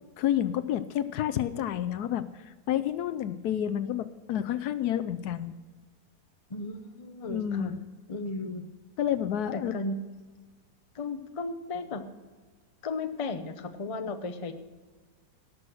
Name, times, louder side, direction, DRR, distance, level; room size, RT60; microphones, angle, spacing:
voice 1, 0.2-5.5 7.3-7.8 9.0-9.7, left 11 dB, 75° left, 13 dB, 1.1 m, -29 dB
voice 2, 6.5-7.7 8.1-8.7 9.5-10.0 10.9-12.0 12.8-14.5, left 3 dB, 35° left, 7 dB, 0.6 m, -35 dB
18.5 x 6.3 x 6.2 m, 1.4 s
omnidirectional pair, 1.8 m